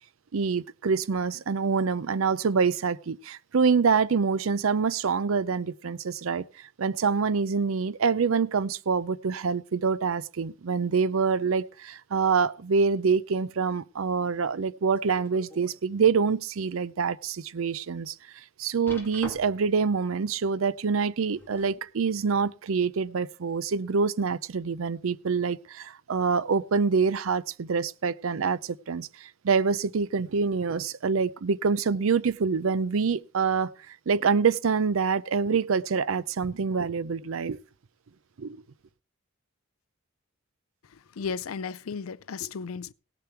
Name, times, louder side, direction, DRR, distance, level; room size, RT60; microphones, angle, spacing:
voice 1, 0.3-18.2 18.6-37.6 38.4-38.6, right 5 dB, 75° right, 0.5 m, -26 dB
sound 1, 15.0-15.8 16.3-16.4 17.0-17.1 18.9-19.8 21.1-21.9 22.8-22.9, left 1 dB, 10° left, 2.5 m, -44 dB
voice 2, 40.8-42.9, left 5 dB, 85° left, 0.5 m, -35 dB
17.0 x 6.9 x 4.5 m
head